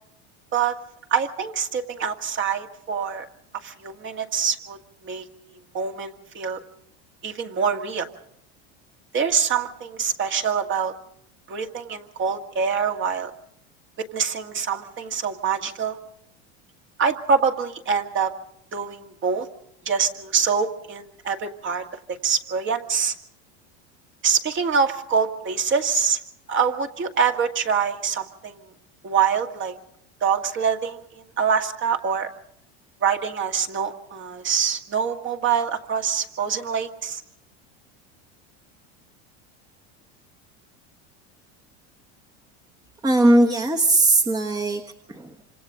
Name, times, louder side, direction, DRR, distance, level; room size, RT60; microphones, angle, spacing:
voice 1, 1.1-3.3 3.5-4.8 5.0-5.3 5.7-6.6 7.2-8.1 9.1-10.9 11.5-13.3 14.1-16.0 17.0-18.3 18.7-19.5 19.9-23.1 24.2-26.2 26.5-28.7 29.0-29.7 30.2-32.3 33.0-37.2, right 6 dB, 35° right, 5 dB, 1.9 m, -25 dB
voice 2, 43.0-44.8 45.1-45.3, right 2 dB, 10° right, 3 dB, 1.3 m, -19 dB
27.5 x 26.5 x 3.8 m, 0.68 s
supercardioid pair, 125°, 34 cm